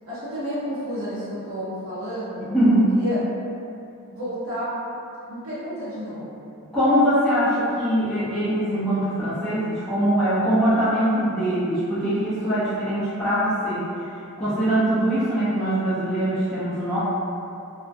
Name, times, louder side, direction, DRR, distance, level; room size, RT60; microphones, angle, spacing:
voice 1, 0.1-2.4 2.9-3.2 4.1-4.8 5.3-6.5, equal, 65° right, -13 dB, 0.7 m, -31 dB
voice 2, 2.5-3.0 6.7-13.9 14.4-17.0, equal, 5° left, -13 dB, 0.4 m, -22 dB
2.3 x 2.1 x 2.5 m, 2.6 s
head